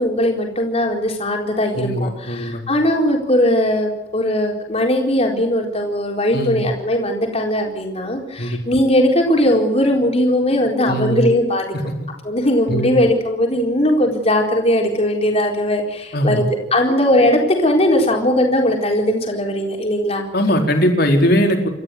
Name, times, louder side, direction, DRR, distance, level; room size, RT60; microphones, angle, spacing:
voice 1, 0.0-11.7 12.2-16.5 16.7-20.2, left 1 dB, 35° left, 0 dB, 4.3 m, -19 dB
voice 2, 1.7-2.6 6.3-6.6 8.4-8.6 10.8-11.2 12.7-12.9 16.1-16.4 20.3-21.7, equal, 55° left, 3 dB, 4.5 m, -19 dB
28.5 x 14.0 x 7.8 m, 0.96 s
head